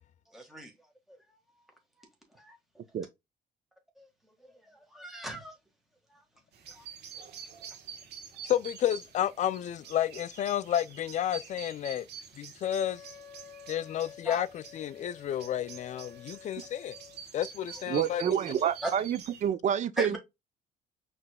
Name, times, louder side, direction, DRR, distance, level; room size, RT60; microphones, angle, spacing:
voice 1, 0.3-0.7 1.1-1.4 2.0-2.6 4.0-5.5 6.1-6.2 6.7-6.9 14.2-14.4 18.8-18.9 20.0-20.2, right 1 dB, ahead, 1.6 m, -39 dB
sound 1, 6.5-19.5, right 7 dB, 80° right, 1.3 m, -47 dB
voice 2, 8.4-12.1 12.3-13.1 13.7-17.0 17.3-18.4, left 11 dB, 45° left, 0.4 m, -31 dB
Wind instrument woodwind instrument, 12.7-17.2, left 7 dB, 20° left, 2.3 m, -51 dB
voice 3, 17.9-20.2, right 9 dB, 45° right, 0.5 m, -28 dB
5.8 x 3.2 x 2.2 m
cardioid pair, 110°, 17 cm